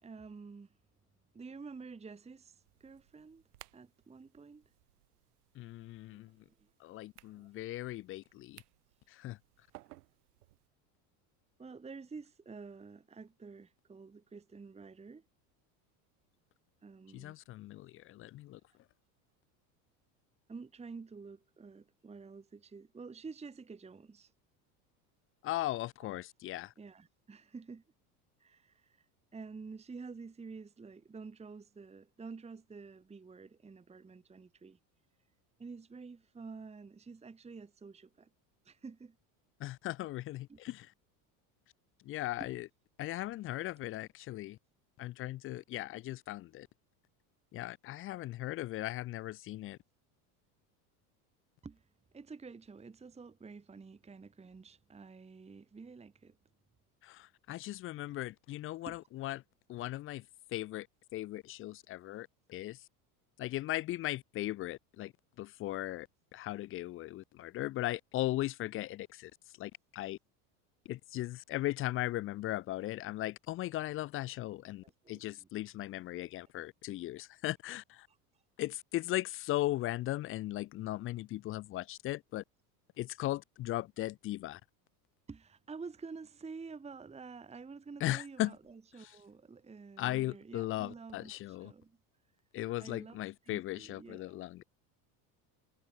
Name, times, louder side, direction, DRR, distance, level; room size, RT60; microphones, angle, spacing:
voice 1, 0.0-0.8 1.3-3.4 3.7-4.7 6.1-6.7 7.3-7.5 9.7-9.8 11.6-15.2 16.8-17.4 20.5-24.3 26.8-27.8 28.4-34.8 35.6-38.3 38.6-39.2 40.5-40.6 42.4-42.6 43.8-43.9 51.6-56.4 58.1-58.2 58.9-59.0 74.6-75.5 76.1-76.3 78.1-78.4 85.3-92.0 92.8-94.4, right 4 dB, 15° right, 1.3 m, -49 dB
sound 1, 2.6-10.7, right 18 dB, 85° right, 2.4 m, -61 dB
voice 2, 5.6-6.3 6.8-8.6 9.1-9.4 17.1-18.6 25.4-26.7 39.6-40.9 42.0-42.7 43.0-44.6 45.0-46.7 47.5-49.8 57.0-59.4 59.7-60.2 60.5-60.9 61.1-62.8 63.4-65.1 65.4-66.1 66.3-69.3 69.6-70.2 70.9-78.1 78.6-82.4 83.0-84.6 88.0-88.5 90.0-91.7 92.5-94.6, left 16 dB, 30° left, 0.4 m, -38 dB
supercardioid pair, 100°, 45 cm